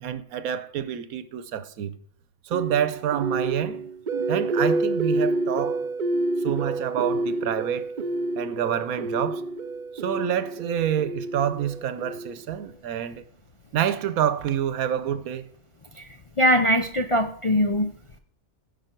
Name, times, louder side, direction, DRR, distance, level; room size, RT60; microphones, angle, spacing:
voice 1, 0.0-1.9 2.4-3.8 4.3-5.8 6.4-7.9 8.4-9.4 10.0-13.2 13.7-15.5, right 9 dB, 90° right, 1.2 m, -27 dB
sound 1, 2.5-12.6, right 2 dB, 50° right, 0.6 m, -28 dB
voice 2, 16.4-17.9, equal, 40° left, 0.4 m, -21 dB
16.0 x 5.9 x 4.5 m
omnidirectional pair, 1.4 m